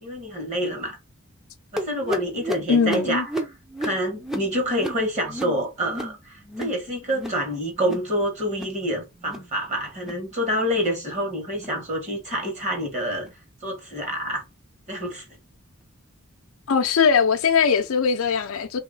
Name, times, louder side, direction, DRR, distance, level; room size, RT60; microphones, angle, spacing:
voice 1, 0.0-1.0 1.7-3.4 3.8-13.3 13.6-14.4 14.9-15.2, equal, 35° right, 1.5 m, -27 dB
sound 1, 1.8-6.8 7.1-7.5 7.7-8.1 8.4-8.8 9.2-9.5 9.9-10.3 10.7-11.0 11.5-11.8 12.3-12.6 13.2-13.4 14.1-14.2 14.9-15.0, equal, ahead, 0.5 m, -33 dB
voice 2, 2.7-3.3 16.7-18.8, left 6 dB, 65° left, 0.5 m, -20 dB
3.1 x 2.9 x 3.9 m
head